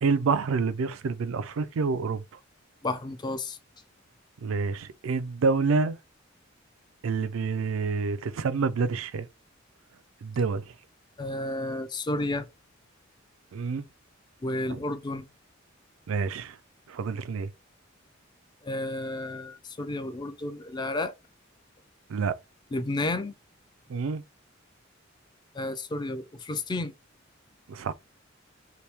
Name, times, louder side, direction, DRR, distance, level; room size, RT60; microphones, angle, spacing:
voice 1, 0.0-2.2 4.4-6.0 7.0-9.3 10.2-10.7 13.5-13.8 14.7-14.8 16.1-16.6 16.9-17.5 22.1-22.4 23.9-24.2 27.7-27.9, right 4 dB, 80° right, 0.4 m, -27 dB
voice 2, 2.8-3.6 11.2-12.5 14.4-15.3 18.6-21.1 22.7-23.3 25.5-26.9, left 2 dB, 20° left, 0.4 m, -31 dB
2.9 x 2.6 x 3.3 m
head